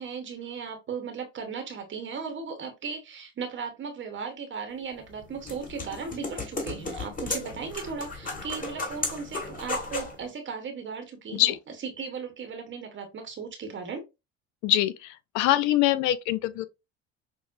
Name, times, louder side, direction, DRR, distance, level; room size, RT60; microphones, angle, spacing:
voice 1, 0.0-11.6 11.8-14.0, right 5 dB, 40° right, 0.9 m, -37 dB
sound 1, 4.9-10.2, left 3 dB, 25° left, 1.9 m, -35 dB
voice 2, 14.6-16.7, left 14 dB, 65° left, 0.6 m, -24 dB
6.0 x 2.0 x 2.4 m
hypercardioid pair, 80°, 31 cm